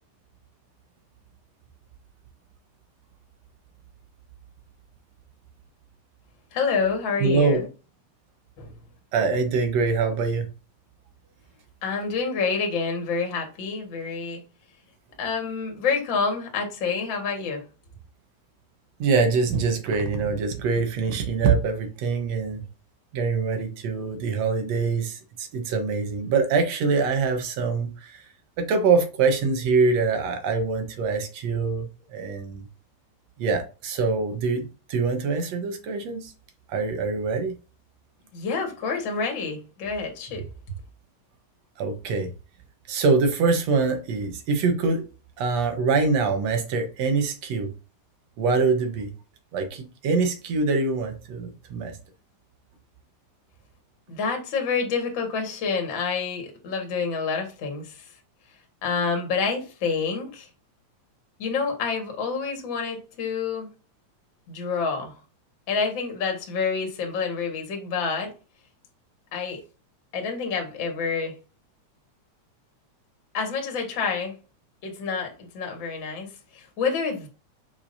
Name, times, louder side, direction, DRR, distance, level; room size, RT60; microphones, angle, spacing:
voice 1, 6.5-7.7 8.6-8.7 11.8-14.4 15.2-17.6 38.3-40.5 54.1-58.1 58.8-60.5 61.4-63.7 64.5-65.2 65.7-68.3 69.3-69.6 70.1-71.4 73.3-74.4 74.8-77.3, left 5 dB, 45° left, 2.1 m, -28 dB
voice 2, 7.2-7.6 9.1-10.5 19.0-22.6 23.1-28.2 28.6-32.7 33.4-36.3 36.7-37.5 41.8-42.3 42.9-45.0 45.4-47.7 48.4-49.1 49.5-51.9, right 4 dB, 65° right, 2.3 m, -24 dB
6.2 x 6.0 x 2.7 m
omnidirectional pair, 3.4 m